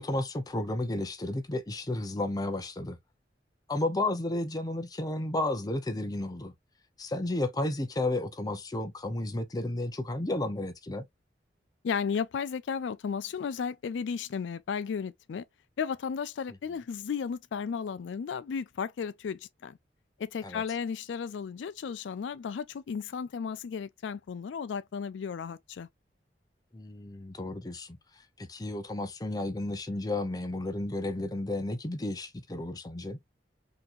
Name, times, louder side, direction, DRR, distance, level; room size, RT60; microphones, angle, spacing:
voice 1, 0.0-3.0 3.7-6.5 7.0-11.1 20.4-20.6 26.7-28.0 28.4-33.2, left 2 dB, 20° left, 0.6 m, -32 dB
voice 2, 11.8-15.4 15.8-19.8 20.2-25.9, left 6 dB, 80° left, 0.4 m, -34 dB
3.8 x 2.9 x 2.5 m
head